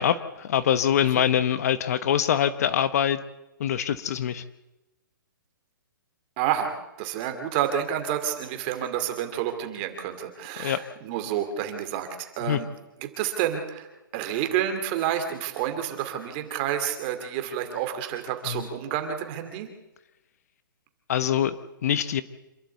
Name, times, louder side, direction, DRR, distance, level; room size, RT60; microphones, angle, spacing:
voice 1, 0.0-3.2 3.6-4.4 10.6-10.8 12.5-12.6 18.5-18.6 21.1-21.5 21.8-22.2, left 9 dB, 45° left, 13 dB, 0.9 m, -24 dB
voice 2, 6.4-12.1 12.4-12.7 13.0-13.9 14.1-19.7, right 10 dB, 25° right, 6 dB, 2.5 m, -29 dB
27.0 x 12.0 x 8.2 m, 0.97 s
hypercardioid pair, 165°, 12 cm